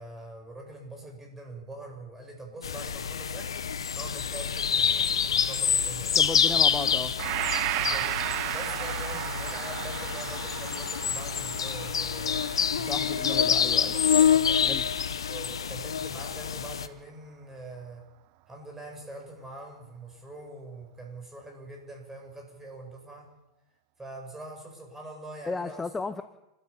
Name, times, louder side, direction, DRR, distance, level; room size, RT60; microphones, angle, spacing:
voice 1, 0.0-3.5 3.9-6.2 7.8-8.1 8.5-12.5 12.8-14.8 15.3-18.0 18.5-23.3 24.0-25.8, right 2 dB, 10° right, 1 dB, 7.9 m, -43 dB
sound 1, 2.6-16.9, left 7 dB, 80° left, 1.0 m, -27 dB
voice 2, 6.2-7.2 12.8-14.0 14.6-14.9 25.5-26.2, left 3 dB, 15° left, 11 dB, 1.0 m, -34 dB
Gong, 7.2-15.2, right 20 dB, 50° right, 0.6 m, -35 dB
29.0 x 13.0 x 7.3 m, 0.94 s
hypercardioid pair, 95°, 3 cm